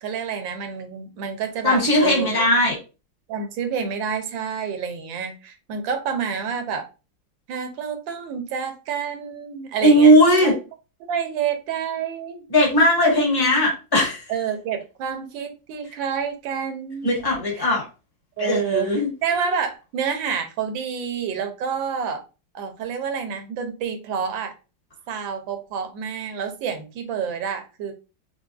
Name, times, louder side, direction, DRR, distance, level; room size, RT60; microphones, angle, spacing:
voice 1, 0.0-2.5 3.3-6.9 7.5-10.1 10.4-10.5 11.1-12.5 14.3-17.1 17.6-17.7 18.4-18.9 19.2-22.2 22.5-24.5 25.1-27.9, right 7 dB, 85° right, 6 dB, 1.4 m, -28 dB
voice 2, 1.6-2.8 9.8-10.5 12.5-14.2 17.0-17.8 18.4-19.1, equal, 15° left, -3 dB, 1.2 m, -18 dB
4.6 x 2.3 x 2.3 m, 0.31 s
omnidirectional pair, 2.0 m